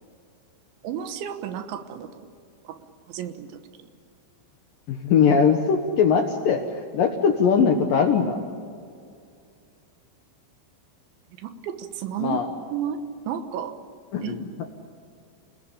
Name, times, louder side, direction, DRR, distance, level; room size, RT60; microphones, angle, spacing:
voice 1, 0.8-2.3 2.7-2.8 3.1-3.5 3.8-3.9 11.4-12.4 12.7-13.0 13.3-13.7 14.2-14.4, right 8 dB, 75° right, 9 dB, 3.5 m, -32 dB
voice 2, 4.9-8.4 12.2-12.5 14.1-14.5, left 6 dB, 70° left, 5 dB, 2.2 m, -21 dB
29.0 x 20.0 x 8.6 m, 2.4 s
omnidirectional pair, 5.6 m